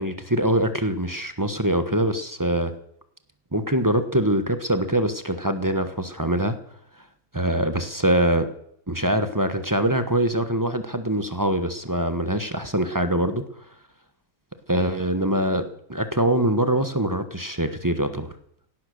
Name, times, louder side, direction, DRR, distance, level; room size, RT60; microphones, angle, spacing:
voice 1, 0.0-2.7 3.5-6.6 7.3-8.5 8.9-13.4 14.7-18.3, right 1 dB, 15° right, 9 dB, 0.7 m, -23 dB
17.0 x 12.0 x 6.5 m, 0.69 s
omnidirectional pair, 2.3 m